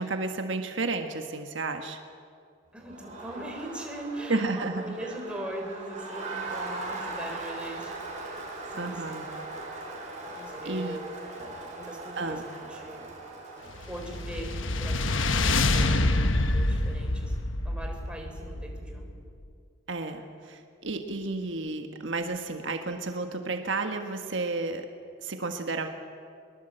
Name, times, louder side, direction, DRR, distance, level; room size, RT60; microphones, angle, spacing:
voice 1, 0.0-2.0 4.3-4.9 8.8-9.3 10.3-11.0 12.2-12.4 19.9-24.9 25.2-25.9, right 3 dB, 70° right, 6 dB, 1.5 m, -32 dB
voice 2, 2.7-8.3 8.7-9.2 10.3-11.1 11.4-13.0 13.9-17.4 17.6-19.1, right 1 dB, 5° right, 1 dB, 3.7 m, -41 dB
Crowd, 2.8-15.3, right 2 dB, 40° right, 5.1 m, -40 dB
sound 1, 13.7-19.2, left 2 dB, 75° left, 1.3 m, -26 dB
22.5 x 20.5 x 8.0 m, 2.3 s
head